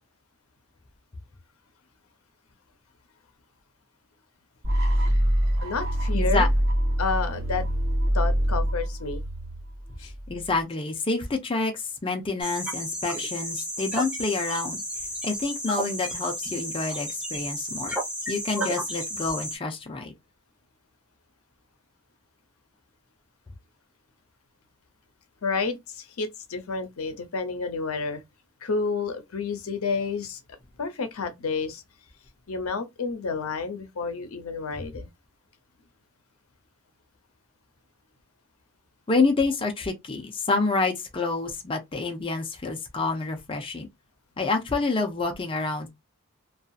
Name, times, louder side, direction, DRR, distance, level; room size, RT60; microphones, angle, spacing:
sound 1, 4.6-10.6, equal, 50° right, 1.0 m, -25 dB
voice 1, 5.6-6.5 7.0-7.7 8.1-9.2 10.0-10.1 25.4-28.2 28.6-30.4 30.8-31.8 32.5-35.1, left 4 dB, 90° left, 0.7 m, -30 dB
voice 2, 6.1-6.5 10.3-14.8 15.2-17.9 18.3-20.1 39.1-43.9 44.4-45.9, left 3 dB, 25° left, 0.5 m, -28 dB
sound 2, 12.4-19.6, equal, 5° right, 0.9 m, -32 dB
2.6 x 2.4 x 2.3 m
head